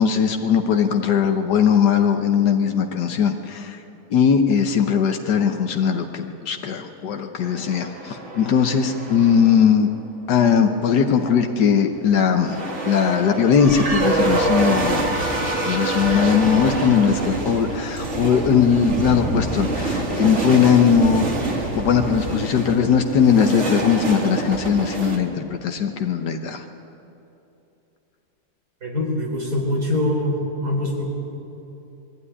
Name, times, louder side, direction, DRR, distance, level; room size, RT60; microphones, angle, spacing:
voice 1, 0.0-3.8 4.1-9.9 10.3-15.2 15.6-21.3 21.7-26.6, left 7 dB, 80° left, 5 dB, 1.6 m, -19 dB
sound 1, 7.4-9.7 12.4-25.2, right 2 dB, 45° right, 2.2 m, -26 dB
voice 2, 28.8-31.1, left 1 dB, 70° right, -1 dB, 4.3 m, -23 dB
21.0 x 14.5 x 9.8 m, 2.9 s
omnidirectional pair, 1.8 m